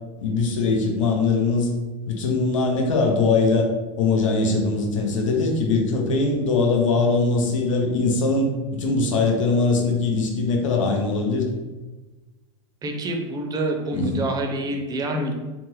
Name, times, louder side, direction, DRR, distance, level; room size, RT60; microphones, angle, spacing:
voice 1, 0.2-1.7 2.1-3.7 4.0-11.5 13.9-14.2, left 3 dB, 90° left, 1 dB, 0.7 m, -21 dB
voice 2, 12.8-15.3, right 1 dB, 25° right, 3 dB, 0.5 m, -26 dB
3.3 x 2.1 x 3.0 m, 1.2 s
hypercardioid pair, 110°, 16 cm